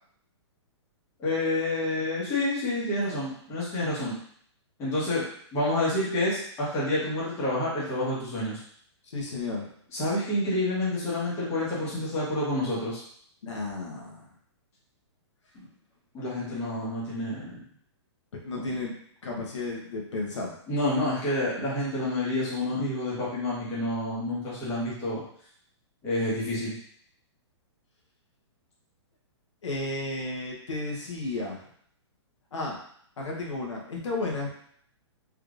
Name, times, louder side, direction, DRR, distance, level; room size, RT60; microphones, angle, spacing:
voice 1, 1.2-4.2 4.8-5.2 5.5-8.6 9.9-13.0 15.5-15.6 16.1-17.6 20.7-25.2 26.0-26.7, left 1 dB, 20° left, -8 dB, 1.3 m, -28 dB
voice 2, 9.1-9.7 13.4-14.3 18.4-18.9 19.2-20.5 29.6-31.6 32.5-32.8 33.2-34.5, left 2 dB, 90° left, -2 dB, 1.1 m, -33 dB
3.5 x 3.2 x 2.5 m, 0.63 s
hypercardioid pair, 160°, 15 cm